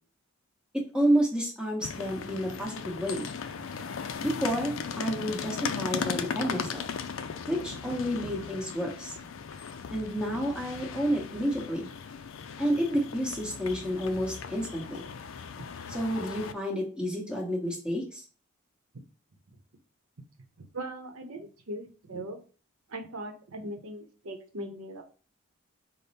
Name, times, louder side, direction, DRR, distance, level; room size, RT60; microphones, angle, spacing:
voice 1, 0.7-3.3 4.2-6.8 7.5-9.2 9.9-11.9 12.6-15.1 15.9-18.2, equal, 5° right, -3 dB, 1.2 m, -30 dB
sound 1, 1.8-16.5, left 6 dB, 65° left, 0.4 m, -37 dB
voice 2, 20.6-22.4 22.9-25.0, right 1 dB, 75° right, 4 dB, 0.8 m, -40 dB
5.2 x 2.1 x 4.1 m, 0.38 s
head